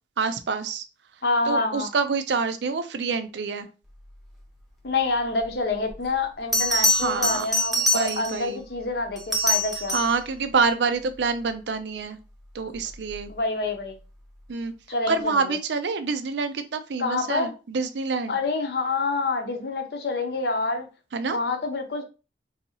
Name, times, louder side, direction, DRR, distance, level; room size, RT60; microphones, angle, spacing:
voice 1, 0.2-0.8 1.5-3.7 6.9-7.5 7.9-8.6 9.9-12.2 12.5-13.3 14.5-14.7 15.1-18.4 21.1-21.4, right 4 dB, 80° right, 10 dB, 0.5 m, -27 dB
voice 2, 1.2-1.9 4.8-10.0 13.3-14.0 14.9-15.6 17.0-17.5 18.3-20.9 21.3-22.0, left 3 dB, 65° left, 6 dB, 0.7 m, -27 dB
Bell, 5.9-6.0 6.5-8.5 9.2-10.2 12.9-13.2, left 1 dB, ahead, 0.7 m, -24 dB
3.9 x 2.8 x 2.7 m, 0.31 s
head